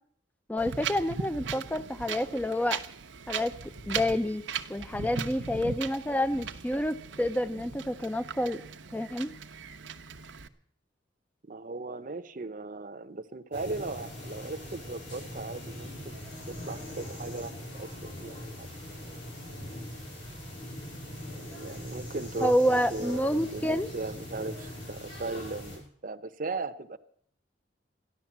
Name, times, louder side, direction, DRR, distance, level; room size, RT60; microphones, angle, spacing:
voice 1, 0.5-2.8 3.3-3.5 3.9-4.4 4.7-8.6 8.9-9.3 22.4-23.9, left 1 dB, 10° left, 13 dB, 0.5 m, -28 dB
Wind, 0.6-10.5, right 6 dB, 85° right, 0.9 m, -38 dB
voice 2, 11.5-18.7 21.5-27.0, right 3 dB, 45° right, 9 dB, 0.8 m, -38 dB
sound 1, 13.5-25.8, left 1 dB, 80° left, 6.8 m, -41 dB
14.0 x 11.0 x 7.3 m, 0.63 s
head